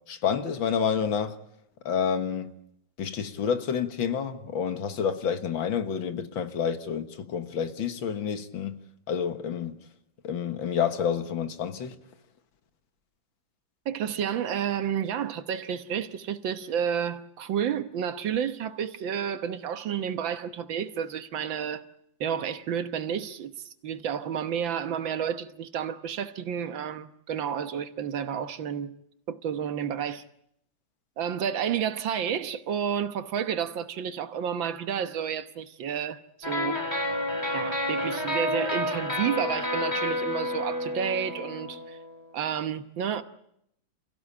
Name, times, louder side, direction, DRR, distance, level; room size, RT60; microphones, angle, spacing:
voice 1, 0.1-1.4 1.9-2.5 3.0-8.8 9.1-9.8 10.2-11.9, left 7 dB, 80° left, 2.2 m, -29 dB
voice 2, 13.9-21.8 22.2-29.0 29.3-30.2 31.2-36.8 37.5-42.0 42.3-43.2, right 8 dB, 80° right, 1.9 m, -31 dB
sound 1, 36.4-42.2, left 1 dB, 15° left, 2.2 m, -30 dB
28.5 x 16.0 x 8.6 m
omnidirectional pair, 2.1 m